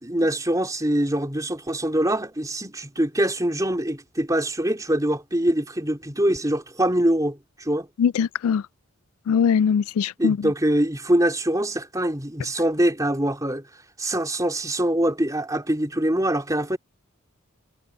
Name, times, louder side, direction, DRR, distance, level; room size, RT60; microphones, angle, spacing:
voice 1, 0.0-7.9 10.2-13.6 14.0-16.8, right 1 dB, 15° right, 3.7 m, -24 dB
voice 2, 8.0-8.6 9.3-10.4, left 7 dB, 75° left, 0.3 m, -21 dB
head